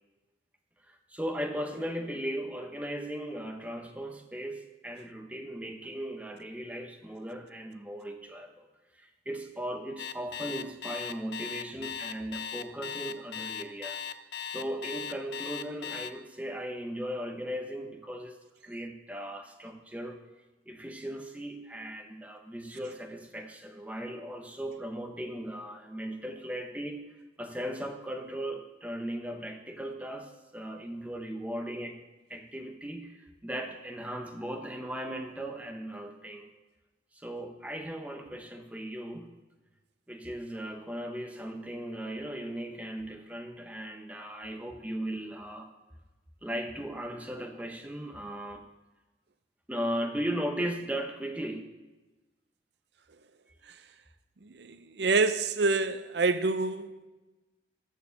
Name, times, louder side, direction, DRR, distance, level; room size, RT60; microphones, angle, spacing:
voice 1, 0.9-8.7 8.9-14.0 14.5-20.2 20.7-27.0 27.4-32.0 32.3-36.5 37.1-39.3 40.1-45.7 46.4-48.6 49.7-51.7, equal, 10° right, 0.8 m, -37 dB
Alarm, 10.0-16.1, left 8 dB, 70° left, 0.5 m, -37 dB
voice 2, 54.4-57.1, right 3 dB, 80° right, 0.6 m, -27 dB
13.0 x 4.6 x 6.9 m
head